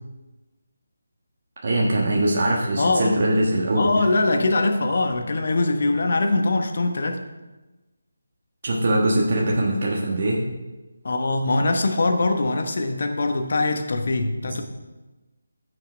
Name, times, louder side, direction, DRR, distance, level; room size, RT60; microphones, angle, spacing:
voice 1, 1.6-4.0 8.6-10.4 14.5-14.6, right 1 dB, 45° right, -3 dB, 1.4 m, -22 dB
voice 2, 2.8-3.2 3.8-7.2 11.0-14.6, left 2 dB, 55° left, 5 dB, 1.1 m, -22 dB
14.5 x 6.6 x 3.4 m, 1.1 s
figure-of-eight pair, 155°, 0 cm